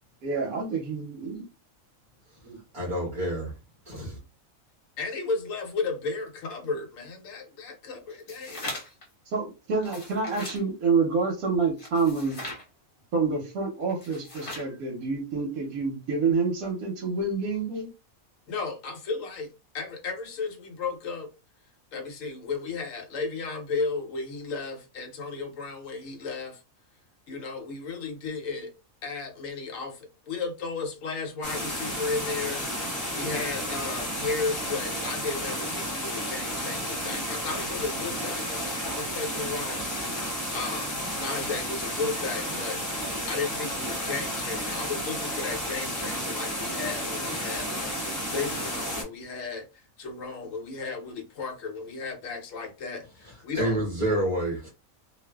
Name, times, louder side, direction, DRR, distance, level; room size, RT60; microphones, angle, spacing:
voice 1, 0.2-1.4 2.4-2.6 9.3-12.4 13.1-17.9, right 4 dB, 85° right, 1.1 m, -27 dB
voice 2, 2.7-3.5 3.9-4.2 53.5-54.7, right 1 dB, 25° right, 0.9 m, -28 dB
voice 3, 5.0-8.7 18.5-21.3 21.9-26.6 27.3-28.7 29.0-39.8 40.3-53.8, left 4 dB, 70° left, 1.1 m, -34 dB
sound 1, 8.1-9.1 9.7-10.6 11.8-12.6 13.9-14.7, left 2 dB, 45° left, 1.0 m, -39 dB
sound 2, 31.4-49.0, equal, 15° left, 0.9 m, -32 dB
2.5 x 2.4 x 2.2 m
omnidirectional pair, 1.4 m